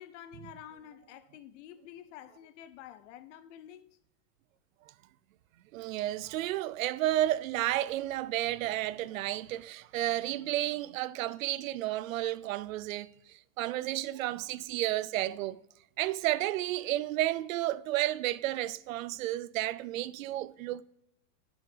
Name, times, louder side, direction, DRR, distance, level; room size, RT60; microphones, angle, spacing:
voice 1, 0.0-3.8, left 10 dB, 65° left, 0.8 m, -49 dB
voice 2, 5.7-15.6 16.0-20.8, right 15 dB, 85° right, 0.5 m, -32 dB
7.6 x 7.2 x 3.3 m
supercardioid pair, 135°, 39 cm